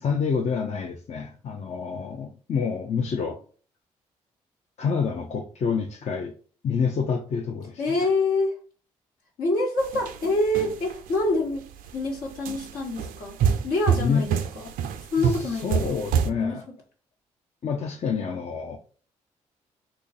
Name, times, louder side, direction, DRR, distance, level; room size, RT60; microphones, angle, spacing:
voice 1, 0.0-3.4 4.8-6.3 6.6-8.1 14.0-14.2 15.2-16.6 17.6-18.8, left 6 dB, 50° left, 0.6 m, -28 dB
voice 2, 7.8-8.5 9.4-11.6 11.9-13.4 13.6-14.7 15.1-16.0 16.3-16.6, left 2 dB, 75° left, 1.4 m, -26 dB
sound 1, 9.8-11.2 11.7-12.0 12.5-16.3, right 7 dB, 75° right, 0.4 m, -27 dB
3.0 x 2.4 x 4.0 m
hypercardioid pair, 50°, 15 cm